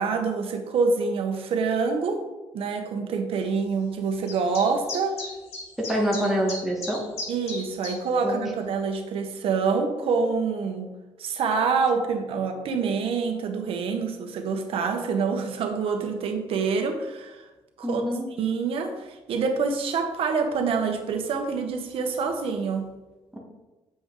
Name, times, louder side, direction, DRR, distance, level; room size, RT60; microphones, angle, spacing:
voice 1, 0.0-2.2 2.5-5.2 7.3-10.9 11.2-17.5 17.8-18.0 18.4-22.9, right 5 dB, 65° right, 4 dB, 1.2 m, -26 dB
sound 1, 4.3-8.0, left 2 dB, 80° left, 2.7 m, -36 dB
voice 2, 5.8-7.0 8.2-8.4 17.8-18.3 23.3-23.4, equal, ahead, -3 dB, 1.6 m, -26 dB
8.8 x 7.0 x 3.8 m, 1.1 s
cardioid pair, 150°, 10 cm